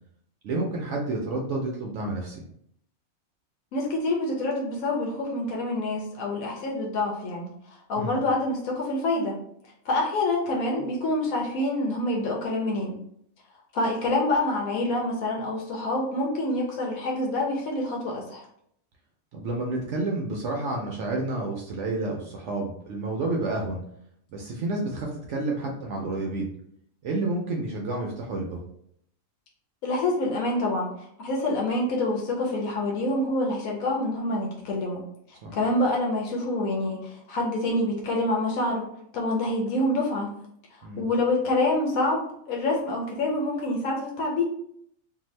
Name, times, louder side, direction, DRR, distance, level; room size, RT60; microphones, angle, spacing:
voice 1, 0.4-2.4 8.0-8.1 19.3-23.8 24.3-26.5 27.0-28.6 35.4-35.6 40.8-41.0, right 2 dB, 65° right, 0 dB, 0.8 m, -30 dB
voice 2, 3.7-7.5 7.9-9.4 9.8-13.0 13.7-18.4 29.8-35.0 35.3-38.9 39.1-40.3 41.0-44.4, left 2 dB, 90° left, -1 dB, 1.1 m, -26 dB
2.7 x 2.5 x 3.1 m, 0.70 s
omnidirectional pair, 1.4 m